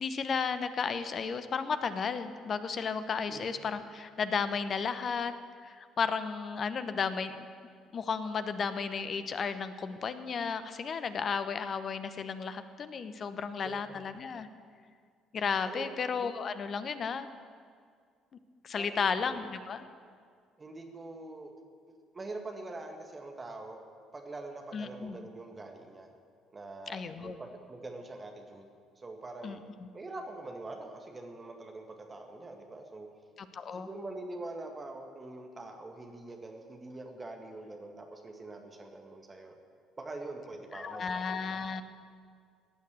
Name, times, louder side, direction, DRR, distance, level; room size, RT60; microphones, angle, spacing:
voice 1, 0.0-5.3 5.6-7.5 7.9-14.5 15.3-17.3 18.6-19.8 24.7-25.2 26.9-27.4 29.4-29.6 33.4-33.9 40.8-41.8, left 5 dB, 40° left, 11 dB, 0.9 m, -33 dB
voice 2, 18.8-19.5 20.6-21.6 21.9-23.8 24.1-26.1 26.5-29.6 29.9-33.1 33.7-39.6 40.0-41.4, right 2 dB, 25° right, 3 dB, 1.9 m, -44 dB
15.5 x 9.4 x 8.2 m, 2.1 s
figure-of-eight pair, 50°, 0 cm